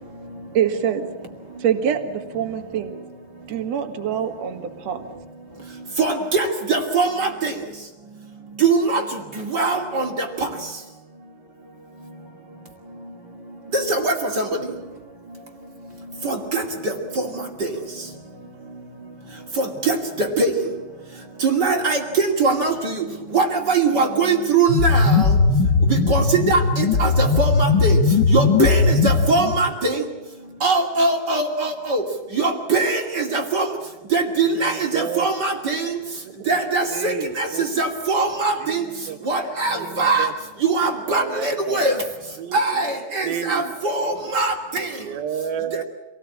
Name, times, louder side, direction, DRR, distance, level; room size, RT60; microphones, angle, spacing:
voice 1, 0.5-1.1 1.6-3.0 3.5-5.1, right 8 dB, 50° right, 6 dB, 2.8 m, -24 dB
voice 2, 6.0-7.5 8.6-9.0 9.4-10.5 13.7-14.5 16.2-17.3 17.6-17.7 19.6-20.5 21.4-23.0 23.3-25.3 25.9-28.0 28.3-30.0 30.6-32.0 32.3-33.7 34.1-36.0 36.5-38.8 39.3-40.3 40.6-41.9 42.5-44.9, right 3 dB, 30° right, 3 dB, 2.6 m, -22 dB
sound 1, 24.7-29.7, left 4 dB, 60° left, 1.1 m, -18 dB
voice 3, 34.4-35.3 36.2-36.6 36.9-37.6 38.6-39.2 39.7-40.3 41.1-41.9 42.4-42.6 43.2-43.7 44.0-44.3 45.0-45.8, right 8 dB, 80° right, 7 dB, 3.5 m, -31 dB
26.5 x 19.0 x 8.6 m, 1.1 s
omnidirectional pair, 4.3 m